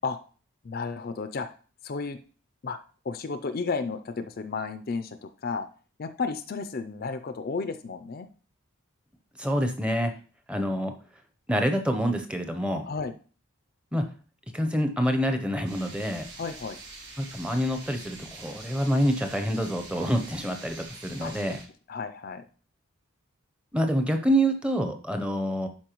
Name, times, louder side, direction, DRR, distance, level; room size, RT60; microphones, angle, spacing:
voice 1, 0.6-1.5 1.8-2.2 2.6-2.8 3.0-5.7 6.0-8.3 12.8-13.1 16.4-16.8 21.2-21.6 21.9-22.4, left 4 dB, 40° left, 9 dB, 0.4 m, -33 dB
voice 2, 9.4-10.1 10.5-10.9 11.5-12.8 13.9-14.0 14.5-16.3 17.2-21.6 23.7-25.7, equal, 5° right, 6 dB, 0.7 m, -26 dB
sound 1, 15.6-21.6, right 3 dB, 50° right, 3.4 m, -45 dB
11.5 x 4.5 x 3.0 m, 0.38 s
head